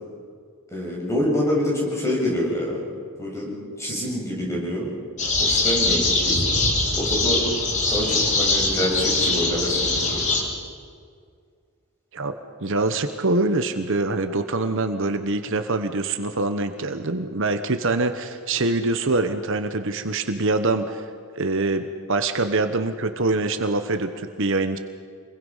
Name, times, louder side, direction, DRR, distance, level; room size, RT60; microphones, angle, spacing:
voice 1, 0.7-2.8 3.2-3.5 3.8-4.9 5.4-6.6 6.9-7.4 7.9-10.3, left 1 dB, 15° left, -4 dB, 7.2 m, -26 dB
sound 1, 5.2-10.4, left 2 dB, 35° left, 3.6 m, -22 dB
voice 2, 12.6-21.0 21.4-24.8, right 2 dB, 60° right, 8 dB, 1.1 m, -24 dB
27.5 x 21.5 x 5.7 m, 2.1 s
head